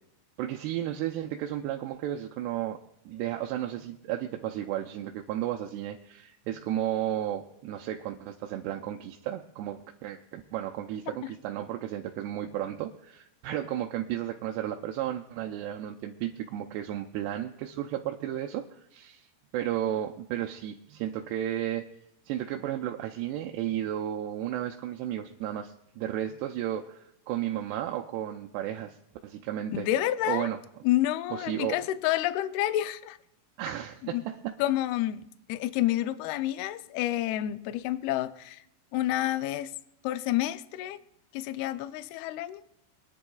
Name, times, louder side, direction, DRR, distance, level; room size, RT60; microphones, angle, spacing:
voice 1, 0.4-2.8 3.1-19.3 19.5-21.9 22.3-29.0 29.2-29.9 30.3-30.6 31.3-31.8 33.6-34.5, right 12 dB, 85° right, 2.7 m, -33 dB
voice 2, 29.7-30.5 30.8-33.2 34.0-34.2 34.6-35.2 35.5-38.6 38.9-39.7 40.0-41.0 41.3-42.6, left 14 dB, 80° left, 2.5 m, -29 dB
25.5 x 10.5 x 2.3 m
omnidirectional pair, 4.8 m